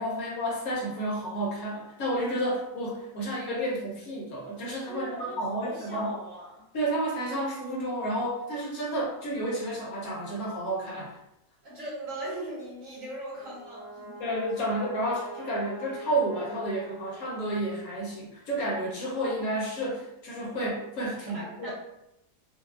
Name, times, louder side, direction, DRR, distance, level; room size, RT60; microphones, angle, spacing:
voice 1, 0.0-6.1 6.7-11.2 14.2-21.7, right 1 dB, 65° left, -4 dB, 1.1 m, -31 dB
voice 2, 4.9-6.6 11.6-14.2 21.3-21.7, right 1 dB, 55° right, -6 dB, 1.3 m, -39 dB
Brass instrument, 13.3-17.7, right 1 dB, 85° right, 1.8 m, -43 dB
3.5 x 2.4 x 2.3 m, 0.87 s
omnidirectional pair, 1.8 m